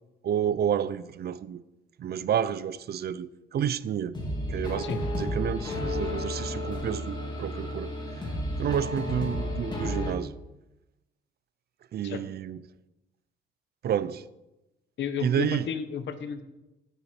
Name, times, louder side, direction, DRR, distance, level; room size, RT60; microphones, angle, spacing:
voice 1, 0.2-1.6 2.0-4.2 4.5-4.9 5.2-7.9 8.6-10.3 11.9-12.6 13.8-14.2 15.2-15.7, right 9 dB, 55° right, 0.5 m, -30 dB
sound 1, 4.1-10.1, left 1 dB, 20° left, 2.9 m, -32 dB
voice 2, 15.0-16.4, left 7 dB, 65° left, 1.1 m, -32 dB
14.0 x 7.0 x 4.4 m
cardioid pair, 90°, 20 cm